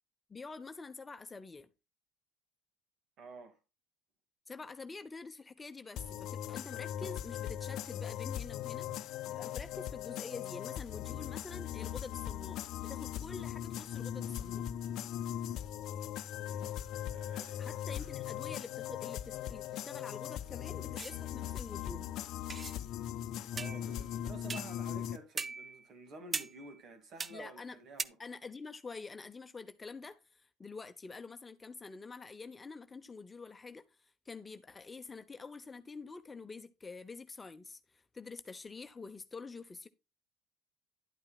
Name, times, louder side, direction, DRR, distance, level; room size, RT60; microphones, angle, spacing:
voice 1, 0.3-1.7 4.5-14.6 17.6-22.1 27.3-27.8 28.2-39.9, left 4 dB, 20° left, 0.9 m, -47 dB
voice 2, 3.2-3.6 16.4-18.1 23.5-28.2, right 2 dB, 55° right, 2.4 m, -51 dB
sound 1, 6.0-25.2, left 11 dB, 60° left, 0.7 m, -39 dB
sound 2, 21.0-21.2 22.5-22.8 23.6-24.0 24.5-24.8 25.4-25.9 26.3-26.8 27.2-27.4 28.0-28.1, right 4 dB, 25° right, 0.5 m, -40 dB
11.0 x 8.8 x 2.4 m
supercardioid pair, 90°, 0 cm